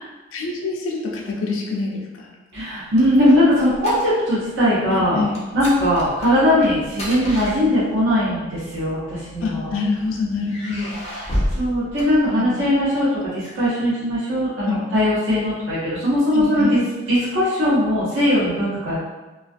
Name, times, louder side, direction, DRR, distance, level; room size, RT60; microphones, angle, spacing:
voice 1, 0.3-2.3 4.9-5.4 9.4-10.9 12.4-12.6 14.6-14.8 16.3-16.8, left 4 dB, 90° left, -1 dB, 0.4 m, -26 dB
sound 1, 2.5-4.4 4.7-4.9 5.3-8.1 9.0-9.9 10.4-12.7, equal, 35° left, 0.5 m, -30 dB
voice 2, 2.5-5.2 5.5-9.7 11.5-16.8 17.1-19.0, left 1 dB, 80° right, -11 dB, 0.9 m, -19 dB
2.4 x 2.2 x 2.5 m, 1.2 s
head